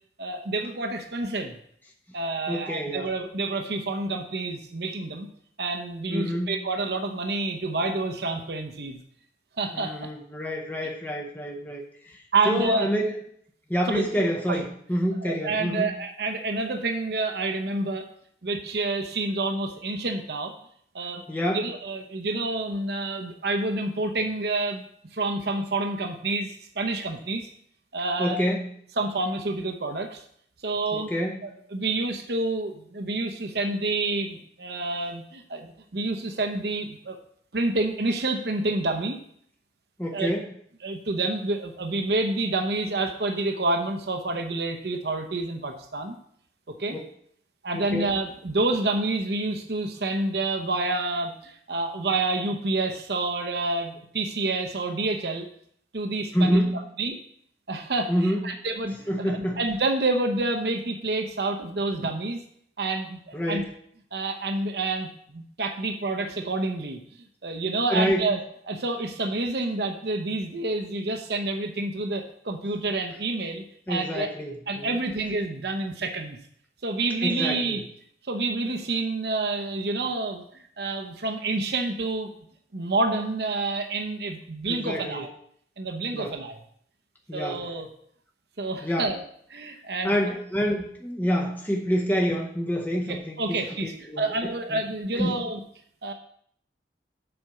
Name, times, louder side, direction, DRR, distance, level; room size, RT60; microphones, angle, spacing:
voice 1, 0.2-1.6 2.1-5.3 5.6-9.0 9.6-9.9 12.3-12.9 13.9-14.0 14.5-14.6 15.2-18.1 18.4-20.5 20.9-21.2 21.5-24.8 25.1-27.5 27.9-28.4 29.0-30.2 30.6-31.1 31.4-37.2 37.5-39.2 40.1-40.3 40.8-46.2 46.7-47.0 47.6-55.5 55.9-56.6 57.0-57.2 57.7-62.4 62.8-63.6 64.1-67.0 67.4-68.4 68.7-74.3 74.7-76.4 76.8-77.8 78.3-80.4 80.8-82.3 82.7-85.3 85.8-86.6 87.3-87.9 88.6-89.2 89.5-90.2 93.1-95.6 96.0-96.1, right 2 dB, 60° right, 5 dB, 0.8 m, -28 dB
voice 2, 2.5-3.1 6.1-6.6 9.7-13.1 13.7-14.6 14.9-15.9 21.3-21.7 28.2-28.7 30.9-31.4 40.0-40.5 46.9-47.0 47.7-48.1 56.3-56.8 58.1-58.5 59.1-59.6 63.3-63.7 67.9-68.3 73.9-75.0 77.2-77.8 84.7-85.2 86.1-86.4 87.3-87.7 88.8-89.1 90.0-94.8 95.2-95.4, equal, 10° left, 0 dB, 0.7 m, -27 dB
7.8 x 5.1 x 5.7 m, 0.65 s
head